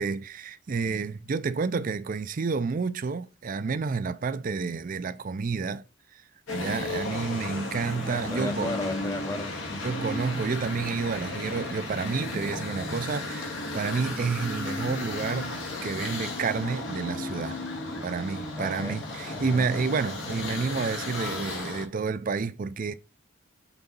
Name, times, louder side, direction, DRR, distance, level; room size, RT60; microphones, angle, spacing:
voice 1, 0.0-5.8 6.1-6.2 6.5-8.8 9.8-15.5 15.8-17.6 18.0-22.9, right 5 dB, 45° right, 0.4 m, -30 dB
sound 1, 6.5-21.8, left 2 dB, 85° left, 1.8 m, -34 dB
voice 2, 8.1-10.1 18.6-19.0 19.3-19.7, left 2 dB, 15° left, 0.6 m, -35 dB
5.9 x 4.0 x 5.2 m
head